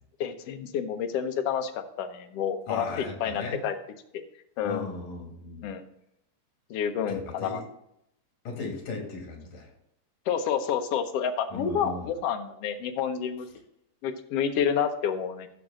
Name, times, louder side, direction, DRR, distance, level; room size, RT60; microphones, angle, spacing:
voice 1, 0.2-3.7 4.6-4.9 5.6-5.8 6.7-7.6 10.3-13.5 14.0-15.5, left 7 dB, 65° left, 6 dB, 1.6 m, -29 dB
voice 2, 2.7-3.6 4.6-5.7 7.1-7.6 8.5-9.7 11.5-12.1, left 3 dB, 85° left, 1 dB, 3.8 m, -36 dB
14.5 x 6.3 x 3.7 m, 0.79 s
omnidirectional pair, 3.6 m